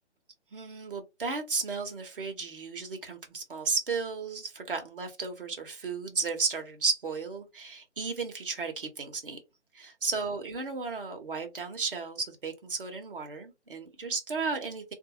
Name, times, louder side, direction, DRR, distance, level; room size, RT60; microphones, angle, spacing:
voice 1, 0.5-9.4 9.7-14.9, right 4 dB, 50° right, 1.2 m, -34 dB
3.7 x 2.7 x 2.7 m
figure-of-eight pair, 145°, 35 cm